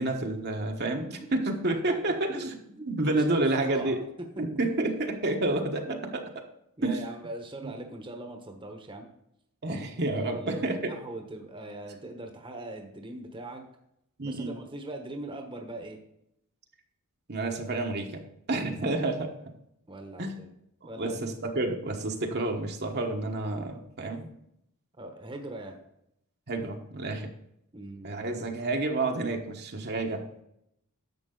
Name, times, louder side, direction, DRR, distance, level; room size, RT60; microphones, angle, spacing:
voice 1, 0.0-2.5 2.9-4.0 4.4-6.2 6.8-7.0 7.6-7.7 9.6-10.9 14.2-14.6 17.3-18.2 18.5-19.3 20.2-20.4 20.8-24.3 26.5-27.3 28.0-30.4, right 2 dB, 45° right, 2 dB, 1.2 m, -29 dB
voice 2, 2.3-4.0 4.4-4.5 5.8-6.1 6.8-9.1 9.7-13.6 14.2-16.0 19.9-20.5 20.8-21.3 25.0-25.8 27.7-28.1, right 2 dB, 20° right, 3 dB, 1.2 m, -41 dB
11.0 x 7.5 x 3.9 m, 0.78 s
head